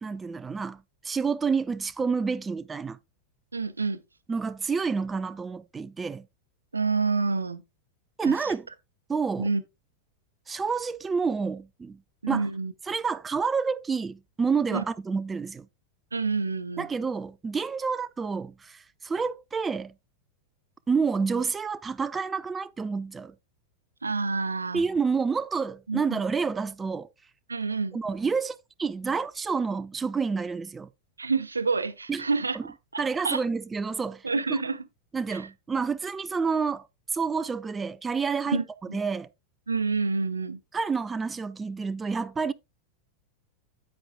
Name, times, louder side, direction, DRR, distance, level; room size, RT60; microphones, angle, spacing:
voice 1, 0.0-3.0 4.3-6.3 8.2-8.7 9.1-9.5 10.5-12.0 12.3-12.5 12.9-15.7 16.8-19.9 20.9-23.3 24.7-27.1 27.9-30.9 32.1-32.2 32.5-32.6 33.0-34.6 35.1-36.9 37.1-38.6 38.9-39.3 40.7-42.5, right 5 dB, 15° right, 0.4 m, -29 dB
voice 2, 3.5-4.0 6.7-7.6 8.2-8.5 9.4-9.6 12.2-12.7 14.7-14.8 16.1-16.8 24.0-24.8 25.9-26.2 27.5-28.0 31.2-33.4 34.2-34.8 35.3-35.5 38.5-39.0 39.7-40.6, right 4 dB, 80° right, 0.8 m, -28 dB
9.6 x 8.2 x 2.3 m
figure-of-eight pair, 90°, 0 cm